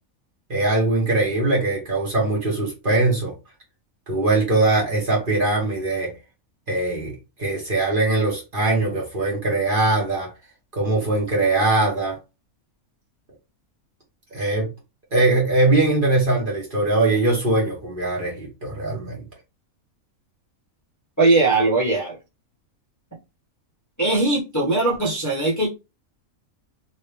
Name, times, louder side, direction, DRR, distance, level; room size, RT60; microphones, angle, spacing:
voice 1, 0.5-3.3 4.1-6.1 6.7-10.3 10.7-12.2 14.3-14.7 15.1-19.2, right 2 dB, 40° right, 1.4 m, -21 dB
voice 2, 21.2-22.2 24.0-25.7, right 2 dB, 15° left, 0.9 m, -20 dB
3.0 x 2.9 x 3.3 m
omnidirectional pair, 1.5 m